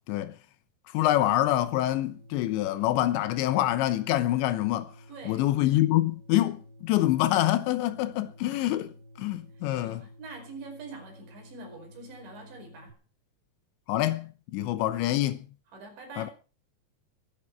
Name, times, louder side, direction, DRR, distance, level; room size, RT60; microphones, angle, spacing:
voice 1, 0.9-4.9 5.3-8.9 9.2-10.0 13.9-15.4 16.2-16.3, left 14 dB, 85° left, 3.2 m, -26 dB
sound 1, 1.5-12.9, equal, 65° right, 3.7 m, -52 dB
voice 2, 5.1-5.5 9.6-13.0 15.7-16.3, right 3 dB, 85° right, 7.4 m, -45 dB
22.0 x 10.0 x 4.7 m
omnidirectional pair, 5.1 m